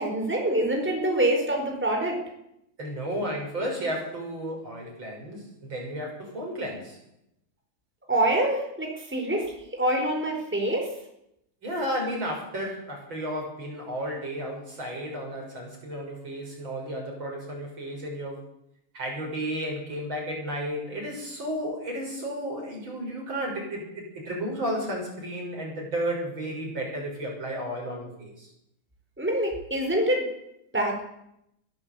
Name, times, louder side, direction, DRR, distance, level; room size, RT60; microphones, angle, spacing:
voice 1, 0.0-2.2 8.1-10.9 29.2-30.2 30.7-31.0, right 1 dB, 5° right, 1 dB, 4.4 m, -25 dB
voice 2, 2.8-7.0 11.6-18.4 18.9-28.5, equal, 60° right, 0 dB, 7.4 m, -33 dB
22.0 x 14.0 x 8.3 m, 0.81 s
omnidirectional pair, 2.4 m